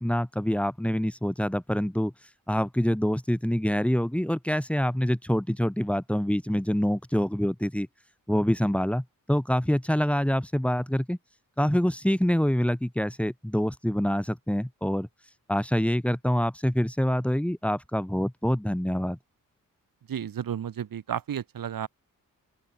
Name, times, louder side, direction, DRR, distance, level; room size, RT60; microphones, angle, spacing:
voice 1, 0.0-2.1 2.5-7.9 8.3-11.2 11.6-15.1 15.5-19.2, equal, 5° left, 7.5 m, -26 dB
voice 2, 20.1-21.9, right 9 dB, 90° right, 7.4 m, -32 dB
open air
wide cardioid pair, 105°, 33 cm